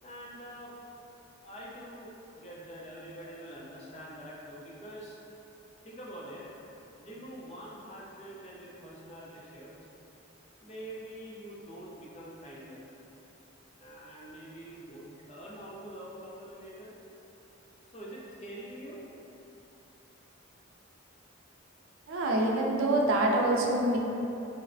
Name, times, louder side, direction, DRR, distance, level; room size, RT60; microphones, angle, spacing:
voice 1, 0.0-0.7 1.4-5.2 5.8-6.5 7.0-9.7 10.6-12.8 13.8-16.9 17.9-19.0, right 1 dB, 30° left, -5 dB, 0.5 m, -45 dB
voice 2, 22.1-24.0, right 1 dB, 80° right, 0 dB, 0.4 m, -26 dB
4.0 x 2.0 x 2.5 m, 2.9 s
head